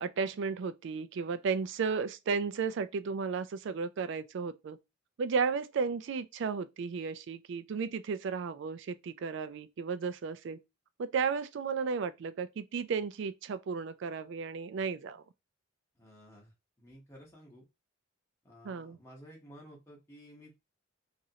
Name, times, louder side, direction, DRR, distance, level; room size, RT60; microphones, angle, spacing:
voice 1, 0.0-4.8 5.2-10.6 11.0-15.2 18.6-19.0, right 5 dB, 60° right, 0.3 m, -34 dB
voice 2, 15.9-17.6 18.4-20.6, equal, 15° left, 0.8 m, -54 dB
3.0 x 2.5 x 2.7 m
head